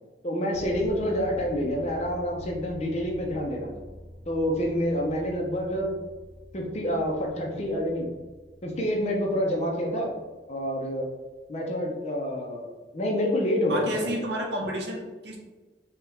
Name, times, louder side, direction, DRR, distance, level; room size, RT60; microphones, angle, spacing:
voice 1, 0.2-3.7 4.3-5.9 6.5-8.1 8.6-10.1 10.5-11.1 11.5-12.7 12.9-14.2, equal, 40° left, -1 dB, 0.7 m, -27 dB
sound 1, 0.5-11.3, equal, 10° right, 1.3 m, -46 dB
voice 2, 13.7-15.4, equal, 75° right, 0 dB, 0.9 m, -30 dB
4.5 x 2.3 x 3.3 m, 1.3 s
head